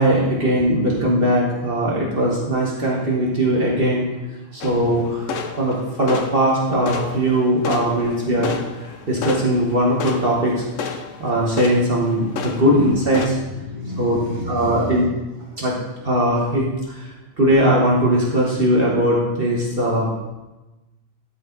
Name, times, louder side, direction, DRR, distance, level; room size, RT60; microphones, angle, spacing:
voice 1, 0.0-4.0 4.5-5.2 5.6-8.5 9.1-10.6 11.2-13.4 14.0-14.2 14.5-15.0 15.6-15.8 16.0-17.1 17.4-20.1, right 1 dB, 50° right, -4 dB, 1.6 m, -19 dB
sound 1, 4.6-13.3, left 6 dB, 85° left, 1.1 m, -32 dB
voice 2, 13.4-16.1, left 1 dB, 25° right, -2 dB, 1.7 m, -34 dB
12.5 x 5.0 x 3.9 m, 1.1 s
omnidirectional pair, 1.3 m